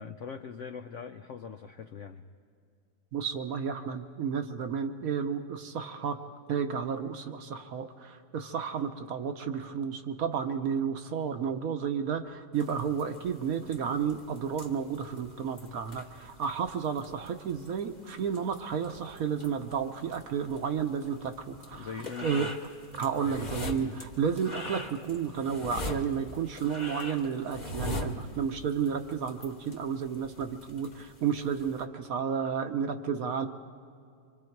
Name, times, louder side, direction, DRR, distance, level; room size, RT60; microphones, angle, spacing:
voice 1, 0.0-2.3 21.8-22.5 23.2-24.0, left 6 dB, 70° left, 7 dB, 0.7 m, -42 dB
voice 2, 3.1-6.2 6.5-21.9 22.2-22.5 23.0-33.5, right 7 dB, 60° right, 7 dB, 1.1 m, -32 dB
sound 1, 12.5-31.8, left 1 dB, 30° left, 1.2 m, -43 dB
25.5 x 25.0 x 4.6 m, 2.4 s
omnidirectional pair, 1.9 m